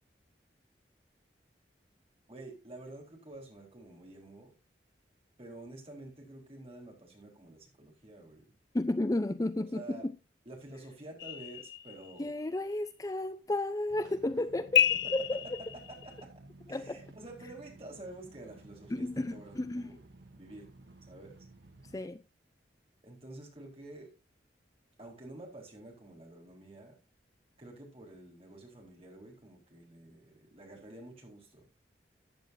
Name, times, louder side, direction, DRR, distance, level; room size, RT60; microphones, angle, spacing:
voice 1, 2.3-4.5 5.4-8.5 9.7-10.1 10.5-12.3 15.0-15.1 16.0-16.3 16.7-20.0 20.4-20.7 21.1-21.4 23.0-24.1 25.0-27.0 27.6-31.6, right 2 dB, 35° right, 4.2 m, -49 dB
voice 2, 8.7-10.1 12.2-15.6 16.7-17.0 18.9-20.0 21.9-22.2, left 1 dB, 20° left, 0.5 m, -33 dB
sound 1, 11.2-12.4 14.7-16.2, left 9 dB, 80° left, 0.6 m, -30 dB
sound 2, 13.9-22.0, right 2 dB, 85° right, 1.4 m, -55 dB
14.5 x 9.3 x 2.7 m
head